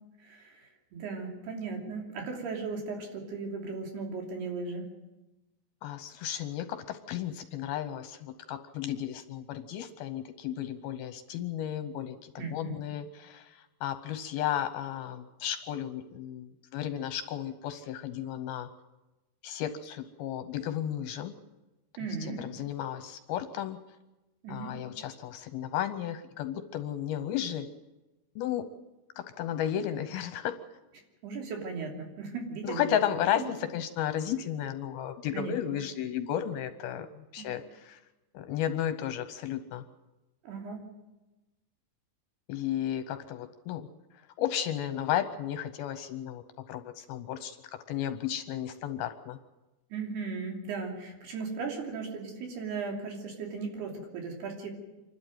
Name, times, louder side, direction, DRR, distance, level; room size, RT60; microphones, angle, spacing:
voice 1, 0.2-4.9 12.4-12.7 22.0-22.5 24.4-24.7 31.2-33.5 35.3-35.8 37.4-37.5 40.4-40.8 49.9-54.7, right 4 dB, 70° right, 1 dB, 4.9 m, -37 dB
voice 2, 5.8-18.7 19.4-21.4 22.4-23.8 24.5-27.7 28.4-28.6 29.4-30.5 32.6-38.0 38.3-39.8 42.5-43.9 44.4-47.6 47.9-49.4, left 10 dB, 75° left, 10 dB, 2.4 m, -33 dB
27.0 x 12.0 x 9.1 m, 1.1 s
omnidirectional pair, 4.9 m